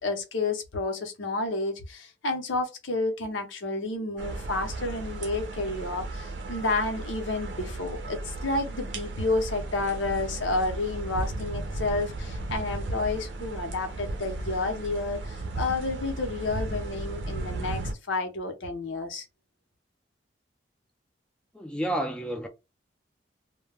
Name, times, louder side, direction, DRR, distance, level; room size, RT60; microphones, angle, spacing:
voice 1, 0.0-17.8 18.1-19.3, left 2 dB, 85° left, 0.8 m, -30 dB
sound 1, 4.2-17.9, right 2 dB, 75° right, 0.5 m, -35 dB
voice 2, 21.5-22.5, right 1 dB, 5° left, 0.4 m, -30 dB
2.2 x 2.2 x 3.3 m
head